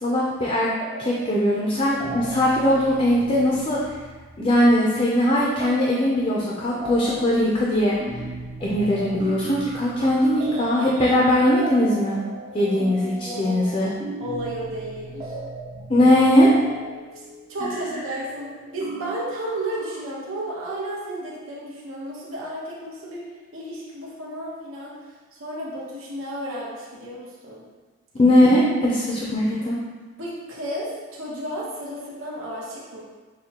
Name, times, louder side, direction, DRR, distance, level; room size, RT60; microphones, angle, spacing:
voice 1, 0.0-0.7 1.0-3.8 4.4-8.0 8.6-12.2 12.5-13.9 15.9-16.5 28.2-29.8, left 1 dB, 30° left, -5 dB, 0.5 m, -20 dB
sound 1, 0.8-1.4 1.7-20.0, right 1 dB, 30° right, 0.4 m, -37 dB
voice 2, 13.2-13.7 14.2-15.3 17.5-25.0 25.4-27.6 30.2-33.0, right 1 dB, 85° right, -6 dB, 1.0 m, -33 dB
6.6 x 2.2 x 2.9 m, 1.3 s
head